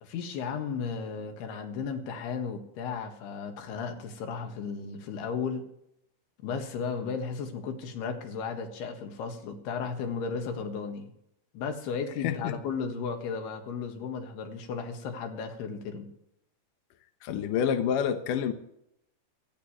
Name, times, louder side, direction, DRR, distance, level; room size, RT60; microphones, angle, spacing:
voice 1, 0.0-5.6 6.4-11.1 11.5-16.1, left 5 dB, 65° left, 3.4 m, -35 dB
voice 2, 12.2-12.6 17.2-18.5, left 8 dB, 85° left, 1.8 m, -28 dB
26.5 x 9.4 x 3.2 m
omnidirectional pair, 5.4 m